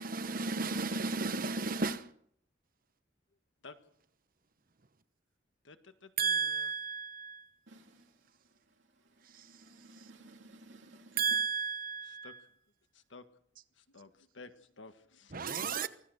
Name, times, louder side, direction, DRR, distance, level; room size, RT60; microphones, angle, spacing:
voice 1, 0.0-2.1 6.2-7.5 11.2-12.3 15.3-15.9, right 5 dB, 50° right, 1.0 m, -33 dB
voice 2, 5.6-6.7 12.0-12.5 12.9-13.2 13.7-15.8, left 3 dB, 80° left, 1.7 m, -53 dB
voice 3, 7.7-8.3 8.7-11.4, right 2 dB, 75° right, 2.8 m, -57 dB
24.5 x 16.5 x 6.5 m
head